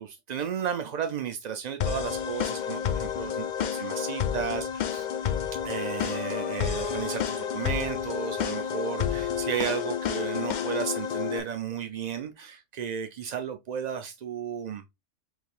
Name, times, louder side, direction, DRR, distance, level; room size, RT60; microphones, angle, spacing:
voice 1, 0.0-5.1 5.6-14.8, right 8 dB, 60° right, 0.4 m, -34 dB
sound 1, 1.8-11.4, left 8 dB, 65° left, 0.4 m, -30 dB
4.8 x 3.4 x 2.4 m
omnidirectional pair, 1.3 m